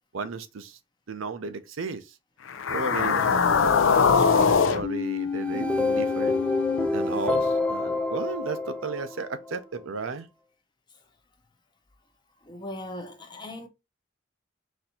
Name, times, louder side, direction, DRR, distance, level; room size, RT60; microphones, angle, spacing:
voice 1, 0.1-0.8 1.1-2.2 2.7-6.5 6.9-10.3, right 4 dB, 80° right, 0.6 m, -35 dB
sound 1, 2.5-6.9, left 6 dB, 70° left, 0.5 m, -23 dB
sound 2, 5.3-9.6, left 2 dB, 5° left, 0.3 m, -28 dB
voice 2, 12.4-13.7, left 1 dB, 20° left, 0.7 m, -38 dB
4.2 x 2.6 x 4.2 m
head